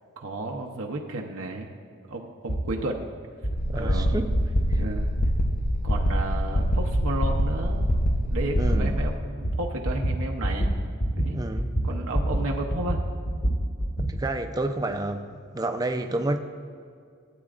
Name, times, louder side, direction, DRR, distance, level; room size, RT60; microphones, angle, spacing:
voice 1, 0.2-1.7 2.1-3.1 3.7-4.3 4.8-5.1 5.8-7.9 8.3-10.7 11.1-11.4 11.8-13.0, right 2 dB, 75° right, 1 dB, 0.7 m, -33 dB
sound 1, 2.5-2.6 3.4-3.5 4.3-4.5 5.2-5.3 6.1-6.2 6.9-7.0 7.8-7.9 8.6-8.7 9.4-9.6 9.8-10.2 10.4-10.7 11.0-11.3 11.6-12.4 12.7-14.1, right 1 dB, 55° left, 1.5 m, -26 dB
sound 2, 3.6-9.2, equal, 35° left, 0.6 m, -25 dB
voice 2, 3.7-4.4 8.6-8.9 11.3-11.7 14.0-15.2 15.5-16.4, right 2 dB, 15° right, 6 dB, 0.4 m, -29 dB
15.5 x 8.6 x 2.5 m, 2.3 s
head